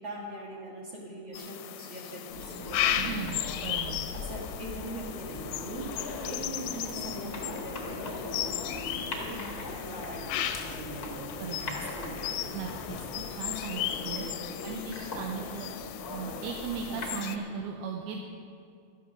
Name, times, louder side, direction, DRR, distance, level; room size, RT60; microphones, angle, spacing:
voice 1, 0.0-3.3 4.1-5.8 6.2-11.1 11.7-12.6 13.9-14.4 16.9-17.0, right 1 dB, 45° right, -3 dB, 1.8 m, -42 dB
sound 1, 1.3-17.4, left 11 dB, 80° left, 2.3 m, -36 dB
sound 2, 2.3-17.2, left 3 dB, 55° left, 1.0 m, -40 dB
voice 2, 3.0-4.0 11.4-11.8 12.5-13.0 13.3-14.3 14.6-15.7 16.1-18.2, right 6 dB, 80° right, 2 dB, 2.6 m, -37 dB
sound 3, 6.9-13.2, left 1 dB, 5° right, 2.3 m, -52 dB
12.0 x 10.0 x 6.5 m, 2.3 s
omnidirectional pair, 4.7 m